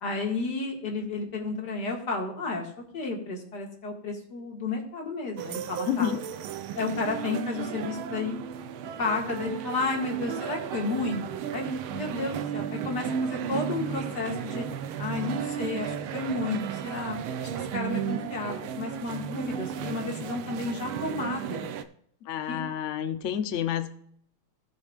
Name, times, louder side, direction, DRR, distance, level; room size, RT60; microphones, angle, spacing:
voice 1, 0.0-6.1 6.7-8.4 9.0-14.6 15.0-21.7 22.5-22.6, left 3 dB, 50° left, 1 dB, 2.4 m, -32 dB
sound 1, 5.4-21.8, right 8 dB, 80° right, 1.6 m, -34 dB
voice 2, 5.9-6.2 22.2-23.9, left 9 dB, 90° left, 9 dB, 0.6 m, -29 dB
17.0 x 7.0 x 2.4 m, 0.65 s
omnidirectional pair, 2.4 m